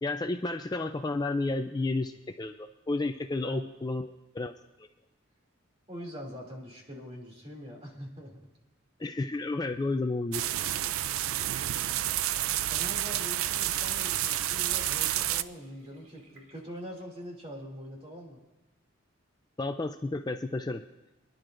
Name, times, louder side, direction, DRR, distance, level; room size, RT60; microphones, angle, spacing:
voice 1, 0.0-2.1 2.4-4.5 4.8-4.9 9.0-10.4 19.6-20.8, left 2 dB, 20° left, 7 dB, 0.3 m, -31 dB
voice 2, 5.9-8.4 12.7-18.4, equal, 30° right, 0 dB, 2.7 m, -43 dB
sound 1, 10.3-15.4, right 13 dB, 85° right, 0.4 m, -30 dB
Water tap faucet / Sink (filling or washing), 13.2-17.0 17.5-17.6, right 2 dB, 65° right, 2.7 m, -48 dB
27.0 x 11.0 x 2.6 m, 1.0 s
head